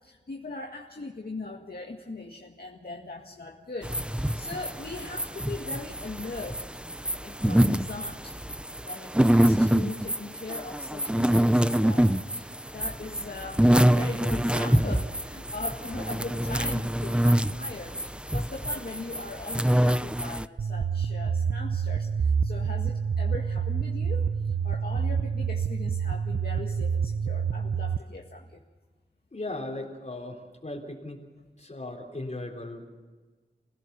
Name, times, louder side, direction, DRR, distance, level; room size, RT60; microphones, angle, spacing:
voice 1, 0.0-6.6 7.2-8.4 8.8-28.6, left 3 dB, 55° left, 0 dB, 2.0 m, -40 dB
sound 1, 3.8-20.5, right 1 dB, 5° right, 0.6 m, -25 dB
sound 2, 20.6-28.0, right 6 dB, 75° right, 0.6 m, -27 dB
voice 2, 29.3-31.2 31.6-32.9, left 2 dB, 40° left, -1 dB, 3.8 m, -37 dB
29.0 x 16.5 x 6.9 m, 1.3 s
wide cardioid pair, 70°, 18 cm